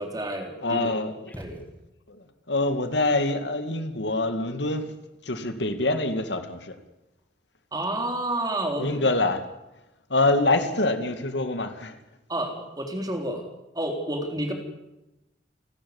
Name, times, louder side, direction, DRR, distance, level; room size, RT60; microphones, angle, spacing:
voice 1, 0.0-0.9 1.4-1.6 7.7-9.0 12.3-13.5 13.7-14.5, right 1 dB, 20° right, 4 dB, 3.9 m, -30 dB
voice 2, 0.6-1.3 2.1-4.9 5.3-6.8 8.8-9.4 10.1-12.0, left 2 dB, 85° left, 9 dB, 2.3 m, -25 dB
sound 1, 1.3-2.3, equal, 10° left, 2.3 m, -45 dB
29.5 x 13.0 x 9.7 m, 0.95 s
head